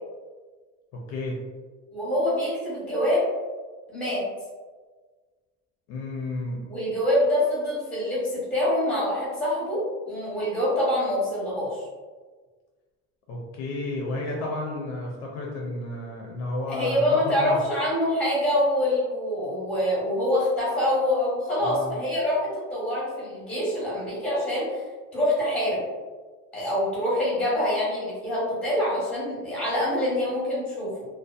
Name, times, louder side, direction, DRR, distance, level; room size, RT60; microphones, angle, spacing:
voice 1, 0.9-1.4 5.9-6.6 13.3-17.6 21.6-21.9, left 2 dB, 55° left, -2 dB, 0.4 m, -32 dB
voice 2, 1.9-3.2 3.9-4.2 6.7-9.8 10.1-11.8 16.7-24.8 25.1-25.8 26.5-30.9, left 1 dB, 5° left, -7 dB, 0.8 m, -25 dB
2.6 x 2.1 x 2.3 m, 1.4 s
cardioid pair, 180°, 32 cm